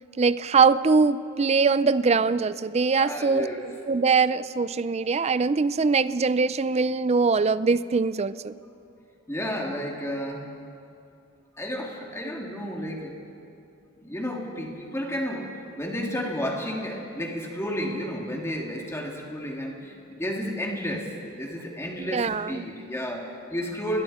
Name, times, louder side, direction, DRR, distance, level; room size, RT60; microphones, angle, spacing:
voice 1, 0.2-8.6 22.0-22.7, right 4 dB, 30° right, 15 dB, 0.4 m, -22 dB
voice 2, 2.9-3.6 9.3-10.5 11.6-13.2 14.0-24.0, equal, 15° left, -1 dB, 2.7 m, -32 dB
30.0 x 21.5 x 4.3 m, 2.6 s
head